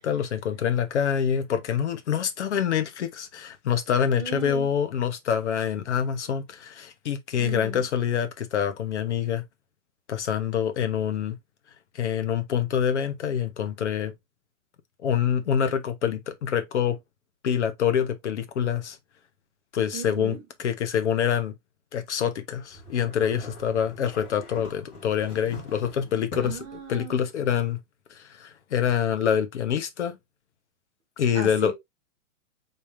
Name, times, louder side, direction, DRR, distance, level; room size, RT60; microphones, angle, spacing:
voice 1, 0.0-9.4 10.1-11.4 11.9-14.1 15.0-17.0 17.4-19.0 19.7-21.5 21.9-26.6 26.9-27.8 28.1-30.2 31.2-31.7, left 8 dB, 55° left, 1.1 m, -26 dB
voice 2, 4.2-4.8 7.4-7.8 19.9-20.4 26.4-27.2 31.3-31.7, right 7 dB, 10° right, 0.8 m, -36 dB
sound 1, 22.7-26.8, left 1 dB, 20° left, 2.6 m, -43 dB
4.1 x 3.5 x 3.4 m
hypercardioid pair, 170°, 43 cm